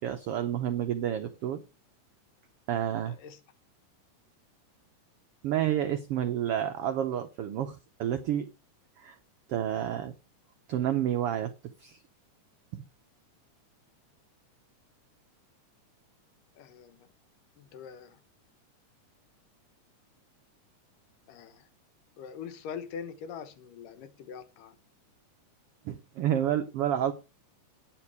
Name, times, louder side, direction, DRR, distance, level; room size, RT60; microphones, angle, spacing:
voice 1, 0.0-1.6 2.7-3.1 5.4-8.5 9.0-9.1 9.5-10.1 10.7-11.5 11.8-12.0 25.8-27.1, right 10 dB, 85° right, 1.3 m, -29 dB
voice 2, 3.1-3.4 16.6-17.1 17.6-18.2 21.3-21.7 22.2-24.8, left 7 dB, 85° left, 2.7 m, -43 dB
9.6 x 7.4 x 4.7 m
omnidirectional pair, 3.7 m